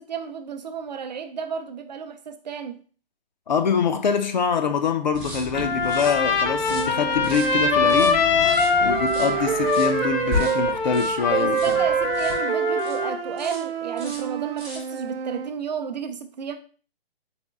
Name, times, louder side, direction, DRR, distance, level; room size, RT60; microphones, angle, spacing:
voice 1, 0.0-2.8 11.4-16.6, right 7 dB, 50° right, 0.5 m, -32 dB
voice 2, 3.5-8.2 8.8-11.7, left 6 dB, 50° left, 0.4 m, -24 dB
sound 1, 5.1-13.0 13.4-13.7 14.0-14.9, left 2 dB, ahead, 0.6 m, -35 dB
Trumpet, 5.5-13.2, left 5 dB, 70° left, 1.1 m, -24 dB
sound 2, 6.7-10.8 11.3-15.5, right 8 dB, 90° right, 0.6 m, -28 dB
4.2 x 3.1 x 3.5 m
hypercardioid pair, 165°, 29 cm